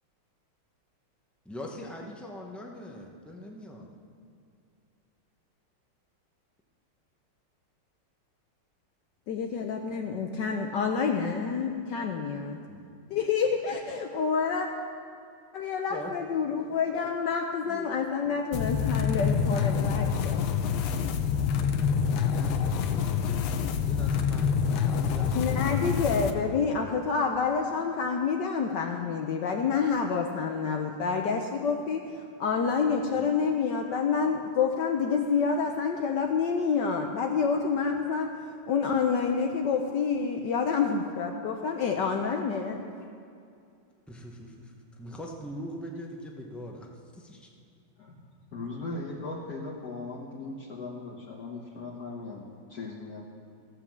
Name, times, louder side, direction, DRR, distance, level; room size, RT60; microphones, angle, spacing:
voice 1, 1.4-3.9 12.7-12.9 15.9-16.1 17.7-18.0 22.1-23.5 23.8-25.5 33.1-33.3 44.1-46.9 47.1-47.5, equal, ahead, 0 dB, 0.3 m, -42 dB
voice 2, 9.3-12.6 13.1-14.7 15.5-20.4 25.3-42.8, left 5 dB, 65° left, 3 dB, 1.2 m, -28 dB
sound 1, 18.5-26.3, left 7 dB, 90° left, 1.6 m, -27 dB
voice 3, 48.4-53.2, left 3 dB, 50° left, -5 dB, 1.6 m, -38 dB
15.5 x 5.8 x 7.2 m, 2.4 s
omnidirectional pair, 2.3 m